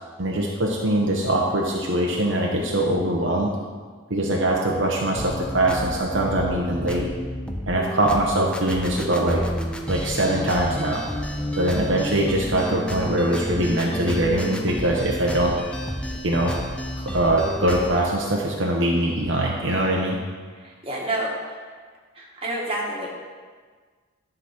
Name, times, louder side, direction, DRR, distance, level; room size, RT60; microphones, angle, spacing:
voice 1, 0.2-3.5 4.1-7.1 7.7-9.4 9.9-11.0 11.6-15.5 16.2-16.5 17.1-20.2, right 1 dB, 60° right, -2 dB, 1.0 m, -22 dB
sound 1, 5.2-18.0, equal, 5° left, 0.5 m, -30 dB
voice 2, 20.6-21.7 22.1-23.1, right 1 dB, 25° right, -4 dB, 1.7 m, -29 dB
11.0 x 4.0 x 5.9 m, 1.5 s
head